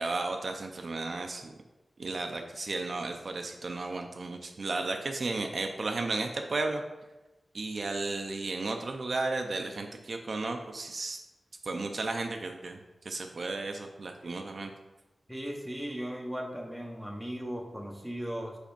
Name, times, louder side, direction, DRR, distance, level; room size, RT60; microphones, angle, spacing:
voice 1, 0.0-1.5 2.0-6.8 7.5-11.2 11.6-12.8 13.0-14.7, right 3 dB, 55° right, 4 dB, 0.5 m, -34 dB
voice 2, 15.3-18.6, equal, ahead, 1 dB, 1.0 m, -37 dB
5.1 x 4.3 x 5.2 m, 1.1 s
wide cardioid pair, 110°, 0 cm